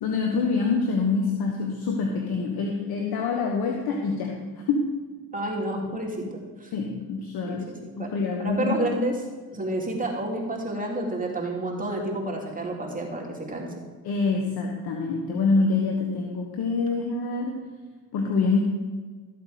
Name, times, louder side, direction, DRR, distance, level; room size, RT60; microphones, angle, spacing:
voice 1, 0.0-4.3 4.7-4.9 6.7-7.7 8.0-8.8 14.0-17.6 18.1-18.6, left 4 dB, 70° left, 1 dB, 1.5 m, -25 dB
voice 2, 5.3-6.3 6.6-6.7 7.5-7.6 8.0-8.1 8.4-9.2 9.5-13.7, right 1 dB, 20° right, -1 dB, 3.0 m, -29 dB
13.5 x 8.0 x 5.1 m, 1.4 s
cardioid pair, 85°, 38 cm